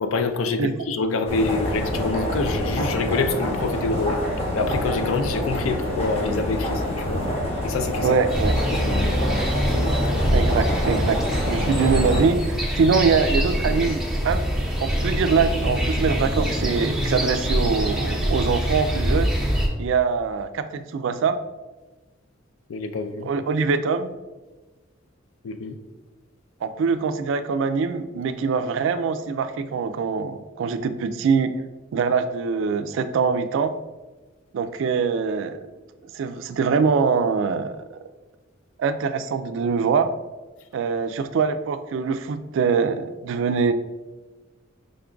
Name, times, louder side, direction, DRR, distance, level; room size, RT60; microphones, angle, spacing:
voice 1, 0.0-4.2 4.5-7.2 7.6-8.2 8.7-9.4 22.7-23.3 25.4-25.8, left 3 dB, 80° left, 8 dB, 0.4 m, -26 dB
sound 1, 1.2-12.3, left 1 dB, 30° left, 0.9 m, -27 dB
voice 2, 8.0-8.6 10.3-14.4 14.8-19.3 19.8-21.4 23.2-24.1 26.6-31.6 31.9-33.7 34.5-35.6 36.1-38.0 38.8-40.1 40.7-43.7, right 5 dB, 65° right, 10 dB, 0.3 m, -23 dB
sound 2, 8.3-19.7, equal, ahead, 0.7 m, -24 dB
5.1 x 2.3 x 3.7 m, 1.2 s
head